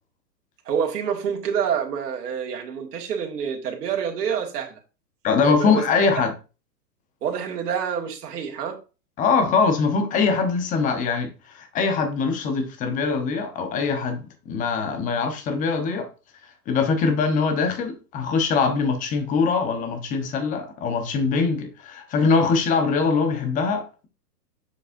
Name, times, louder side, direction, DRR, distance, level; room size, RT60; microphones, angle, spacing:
voice 1, 0.6-4.8 5.3-6.1 7.2-8.8, right 7 dB, 70° right, 2.0 m, -27 dB
voice 2, 5.2-6.3 9.2-16.1 16.7-24.1, left 5 dB, 15° left, 1.0 m, -22 dB
7.3 x 6.3 x 2.6 m
hypercardioid pair, 145°, 49 cm